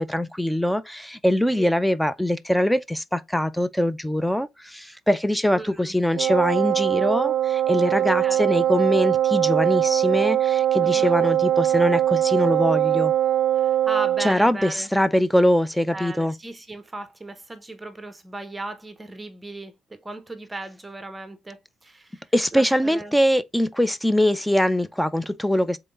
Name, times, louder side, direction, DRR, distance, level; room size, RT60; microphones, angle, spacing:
voice 1, 0.0-13.1 14.2-16.3 22.3-25.8, equal, 5° left, 0.4 m, -22 dB
voice 2, 5.5-6.0 7.9-8.5 10.8-11.2 13.6-14.9 15.9-23.2, right 2 dB, 15° right, 0.9 m, -37 dB
Wind instrument woodwind instrument, 6.1-14.3, right 11 dB, 80° right, 0.4 m, -21 dB
3.8 x 3.4 x 3.8 m
cardioid pair, 90°, 0 cm